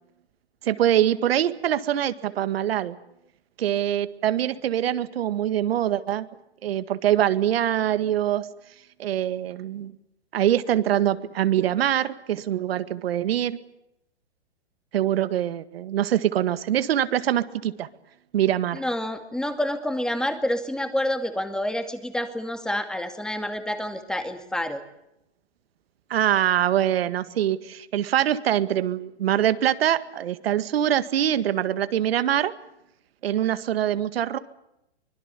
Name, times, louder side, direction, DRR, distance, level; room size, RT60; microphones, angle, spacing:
voice 1, 0.6-3.0 3.6-6.3 6.6-8.5 9.0-9.9 10.3-13.6 14.9-17.9 18.3-18.8 26.1-32.5 33.2-34.4, right 11 dB, 65° right, 12 dB, 1.9 m, -24 dB
voice 2, 18.7-24.8, left 1 dB, ahead, 8 dB, 2.3 m, -28 dB
24.5 x 21.0 x 8.3 m, 0.84 s
hypercardioid pair, 145°, 33 cm